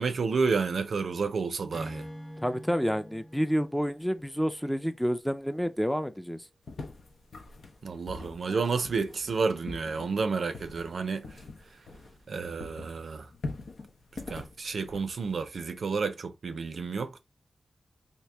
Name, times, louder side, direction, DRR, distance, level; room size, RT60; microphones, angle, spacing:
voice 1, 0.0-2.1 7.8-11.3 12.3-13.3 14.3-17.2, right 4 dB, 80° right, 0.4 m, -30 dB
Acoustic guitar / Strum, 1.7-5.1, equal, 40° left, 0.9 m, -46 dB
voice 2, 2.4-6.4, equal, 5° left, 0.4 m, -29 dB
sound 1, 6.7-12.3 12.6-15.5, left 3 dB, 80° left, 0.7 m, -43 dB
2.9 x 2.7 x 3.3 m
wide cardioid pair, 75°, 0 cm